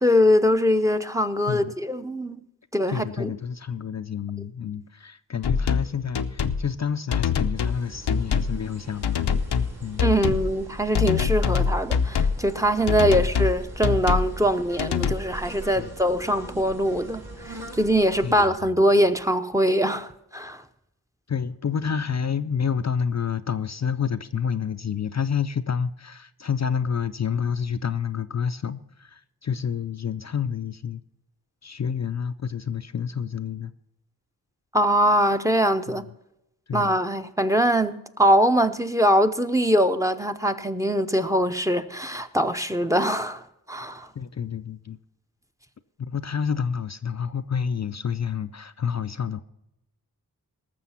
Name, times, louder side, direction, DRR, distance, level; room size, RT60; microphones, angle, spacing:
voice 1, 0.0-2.4 2.7-3.3 10.0-20.6 34.7-36.0 36.7-44.1, equal, 10° right, 0.7 m, -22 dB
voice 2, 2.9-9.4 9.8-10.0 13.1-13.3 15.7-15.9 18.2-18.3 21.3-31.0 31.6-33.7 36.7-37.0 44.2-45.0 46.0-49.4, left 7 dB, 45° left, 0.5 m, -29 dB
sound 1, 5.4-5.9 6.2-6.6 7.1-7.8 8.1-8.6 9.0-9.7 10.0-10.5 10.9-12.4 12.9-13.6 13.8-14.3 14.8-15.2, left 6 dB, 85° left, 0.7 m, -23 dB
sound 2, 7.5-18.5, right 2 dB, 65° right, 2.5 m, -41 dB
18.5 x 6.9 x 5.7 m
cardioid pair, 50°, 39 cm